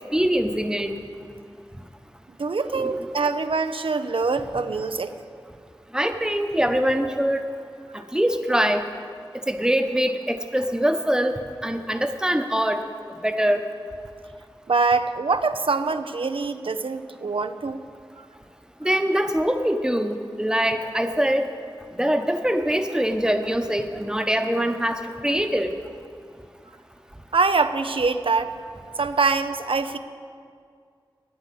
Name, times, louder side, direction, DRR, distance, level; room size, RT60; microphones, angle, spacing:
voice 1, 0.1-0.9 2.7-3.1 5.9-7.5 8.1-8.8 9.5-12.8 13.2-13.6 18.8-21.5 21.9-25.7, equal, 10° right, 7 dB, 0.9 m, -23 dB
voice 2, 2.4-5.1 14.7-17.8 27.3-28.5 29.0-30.0, right 4 dB, 85° right, 9 dB, 0.5 m, -24 dB
9.7 x 9.7 x 8.3 m, 2.2 s
wide cardioid pair, 50°, 9 cm